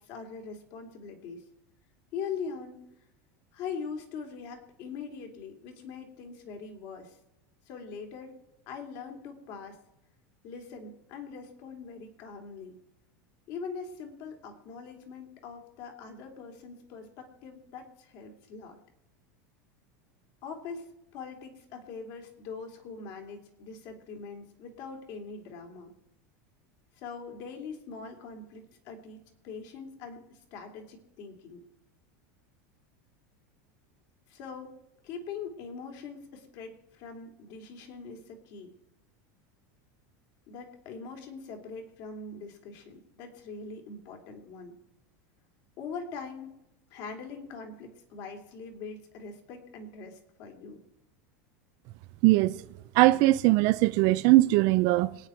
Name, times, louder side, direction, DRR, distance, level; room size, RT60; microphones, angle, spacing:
voice 1, 0.0-1.5 2.1-2.8 3.5-7.2 7.7-8.4 8.7-9.8 10.4-12.8 13.5-18.8 20.4-20.9 21.1-25.9 26.9-31.6 34.3-34.8 35.0-38.7 40.5-44.8 45.8-46.6 46.9-50.8, left 5 dB, 50° left, 3.1 m, -42 dB
voice 2, 52.2-52.6 52.9-55.2, right 19 dB, 50° right, 0.5 m, -21 dB
26.0 x 9.4 x 4.5 m
supercardioid pair, 155°, 9 cm